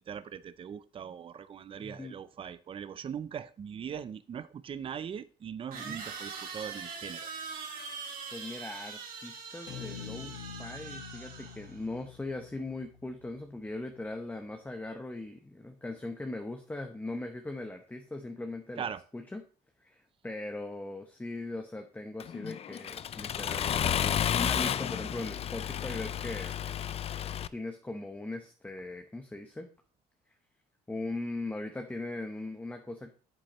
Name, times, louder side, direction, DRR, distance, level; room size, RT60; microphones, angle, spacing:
voice 1, 0.0-7.3 18.8-19.0, right 8 dB, 30° right, 15 dB, 0.5 m, -40 dB
voice 2, 1.8-2.2 5.7-6.0 8.3-18.9 19.1-19.4 19.8-26.6 27.5-29.7 30.9-33.1, left 2 dB, 10° left, 4 dB, 0.8 m, -40 dB
sound 1, 4.1-4.2 5.7-11.8, right 5 dB, 60° right, 2.7 m, -42 dB
sound 2, 9.7-13.9, left 8 dB, 70° left, 1.6 m, -47 dB
Accelerating revving vroom, 22.2-27.5, left 9 dB, 35° left, 0.4 m, -32 dB
8.7 x 7.6 x 3.0 m, 0.39 s
cardioid pair, 110°, 17 cm